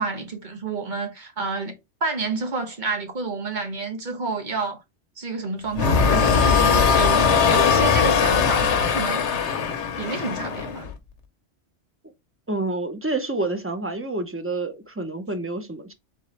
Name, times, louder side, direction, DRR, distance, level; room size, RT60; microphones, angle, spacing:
voice 1, 0.0-1.8 2.0-4.8 5.2-9.2 10.0-10.9, right 3 dB, 45° right, 1.1 m, -29 dB
sound 1, 5.7-10.9, left 6 dB, 80° left, 1.0 m, -20 dB
voice 2, 12.5-15.9, right 2 dB, 20° right, 0.4 m, -28 dB
3.9 x 3.7 x 3.1 m
omnidirectional pair, 1.2 m